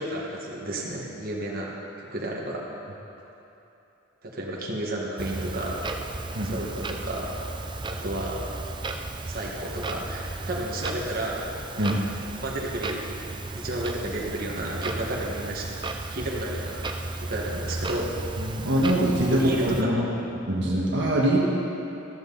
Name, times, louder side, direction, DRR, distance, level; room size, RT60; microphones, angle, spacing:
voice 1, 0.0-2.6 4.2-5.9 6.4-7.3 7.9-8.5 9.3-11.5 12.4-13.0 13.5-15.7 16.1-16.8 17.2-18.1 19.3-20.1, right 1 dB, 50° right, -3 dB, 1.7 m, -32 dB
Clock, 5.2-19.8, right 2 dB, 25° right, 0.6 m, -34 dB
voice 2, 18.4-20.1 20.5-21.4, right 1 dB, 65° right, -4 dB, 1.6 m, -23 dB
13.0 x 13.0 x 4.1 m, 2.9 s
head